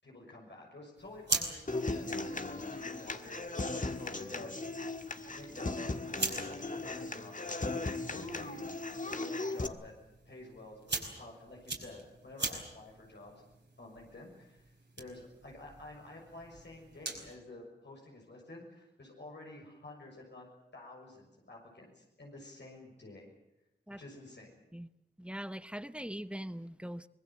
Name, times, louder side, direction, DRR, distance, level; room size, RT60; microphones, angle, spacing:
voice 1, 0.0-4.7 5.4-6.0 6.3-8.8 9.0-9.9 10.2-13.4 13.8-14.7 15.0-20.5 20.7-23.3 23.9-24.6, left 2 dB, 90° left, 6.4 m, -50 dB
sound 1, 0.9-17.4, right 3 dB, 85° right, 5.0 m, -43 dB
Human voice / Acoustic guitar, 1.7-9.7, left 2 dB, 50° left, 1.5 m, -37 dB
voice 2, 25.2-27.1, equal, 5° right, 0.9 m, -41 dB
24.5 x 21.0 x 7.5 m
wide cardioid pair, 70°, 18 cm